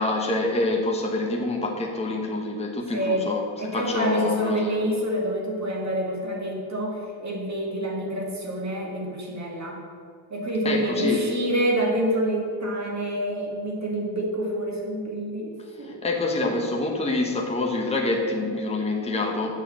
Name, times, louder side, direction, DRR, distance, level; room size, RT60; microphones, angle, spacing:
voice 1, 0.0-3.4 3.7-4.7 10.6-11.3 15.8-19.6, left 2 dB, 15° left, 0 dB, 1.0 m, -26 dB
voice 2, 2.9-3.3 3.6-9.8 10.3-15.5 15.8-16.0, right 1 dB, 35° right, -1 dB, 2.1 m, -27 dB
8.0 x 6.8 x 7.6 m, 2.2 s
wide cardioid pair, 150°, 47 cm